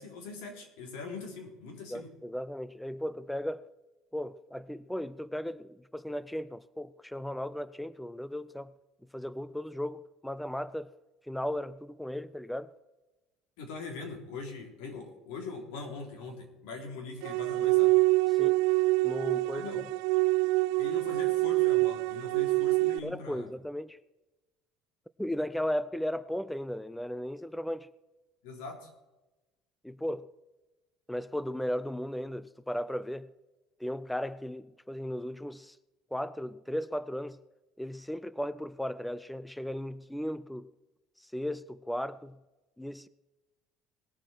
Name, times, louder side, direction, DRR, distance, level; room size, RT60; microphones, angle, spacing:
voice 1, 0.0-2.1 13.6-18.0 19.5-19.9 20.8-23.5 28.4-28.9, left 4 dB, 85° left, 3.6 m, -42 dB
voice 2, 1.9-3.7 4.1-8.7 9.1-10.9 11.3-12.7 18.3-18.6 19.0-19.7 23.0-24.0 25.2-27.9 29.8-30.3 31.1-33.3 33.8-35.8 36.1-37.4 37.8-40.7 41.2-42.4 42.8-43.1, equal, 5° left, 0.3 m, -36 dB
sound 1, 17.2-23.0, right 22 dB, 80° right, 0.3 m, -26 dB
20.0 x 7.5 x 4.4 m
cardioid pair, 145°, 0 cm